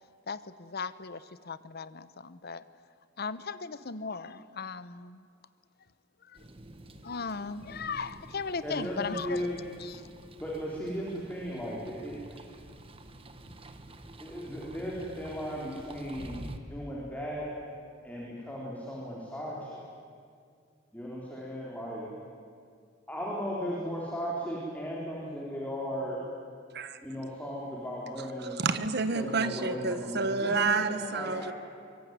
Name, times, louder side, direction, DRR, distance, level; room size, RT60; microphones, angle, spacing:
voice 1, 0.3-2.6 3.2-5.3 6.2-6.4 7.0-9.5 9.8-10.0, left 5 dB, 55° left, 15 dB, 0.9 m, -37 dB
sound 1, 6.3-16.6, right 1 dB, 30° right, 1.4 m, -48 dB
voice 2, 8.6-9.6 10.4-12.5 14.2-16.4 16.7-17.5 18.0-19.8 20.9-22.1 23.1-26.2 27.0-28.6 29.1-31.5, equal, 10° left, -5 dB, 3.9 m, -36 dB
voice 3, 28.6-31.5, right 4 dB, 55° right, 11 dB, 1.4 m, -29 dB
24.0 x 22.5 x 9.5 m, 2.3 s
head